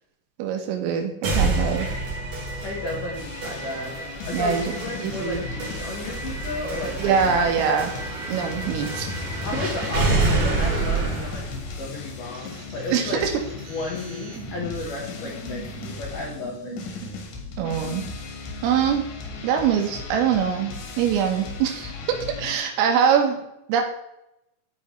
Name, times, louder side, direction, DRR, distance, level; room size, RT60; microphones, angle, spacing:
voice 1, 0.4-1.9 4.3-4.6 5.0-5.4 7.0-7.9 8.3-9.1 12.9-13.3 17.6-18.0 18.6-19.1 19.4-23.4 23.7-23.8, right 7 dB, 85° right, 3 dB, 3.8 m, -23 dB
sound 1, 1.2-13.2, right 3 dB, 45° right, 3.9 m, -28 dB
voice 2, 2.6-4.0 4.3-7.5 9.4-11.4 11.8-13.2 13.7-16.7, left 3 dB, 85° left, -2 dB, 1.8 m, -33 dB
Heavy Metal Riffs - Monolith, 3.2-22.6, left 4 dB, 65° left, 3.1 m, -38 dB
sound 2, 12.3-18.1, right 3 dB, 65° right, 1.9 m, -40 dB
12.5 x 5.4 x 3.2 m, 0.85 s
omnidirectional pair, 5.9 m